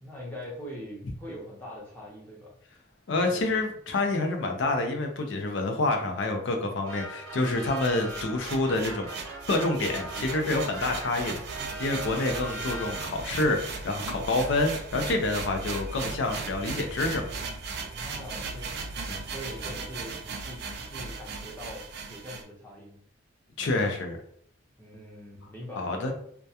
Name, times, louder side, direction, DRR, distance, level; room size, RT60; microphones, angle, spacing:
voice 1, 0.0-2.5 3.3-3.4 14.0-14.3 17.9-23.0 24.8-26.1, equal, 10° left, -5 dB, 0.6 m, -43 dB
voice 2, 3.1-9.1 9.5-11.4 11.8-17.3 19.1-19.2 23.6-24.2 25.8-26.1, left 2 dB, 60° left, 3 dB, 0.4 m, -27 dB
sound 1, 6.9-13.4, right 1 dB, 75° right, 0.8 m, -40 dB
sound 2, 7.4-22.4, right 4 dB, 50° right, 0.3 m, -37 dB
2.2 x 2.2 x 2.7 m, 0.64 s
head